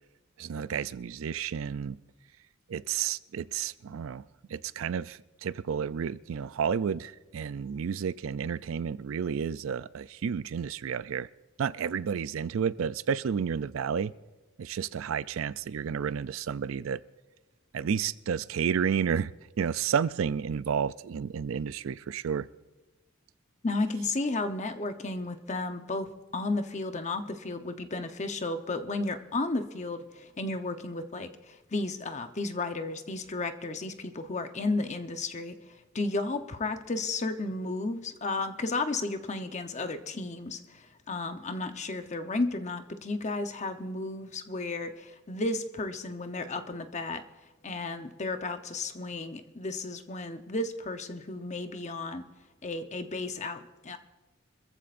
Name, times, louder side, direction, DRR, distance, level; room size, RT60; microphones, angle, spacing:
voice 1, 0.4-2.0 2.7-4.2 4.5-11.3 11.6-14.1 14.6-17.0 17.7-19.3 19.6-22.5, right 7 dB, 70° right, 17 dB, 0.4 m, -31 dB
voice 2, 23.6-26.1 26.3-35.5 35.9-47.2 47.6-52.2 52.6-54.0, left 2 dB, 35° left, 7 dB, 0.8 m, -33 dB
25.0 x 14.5 x 2.6 m, 1.1 s
head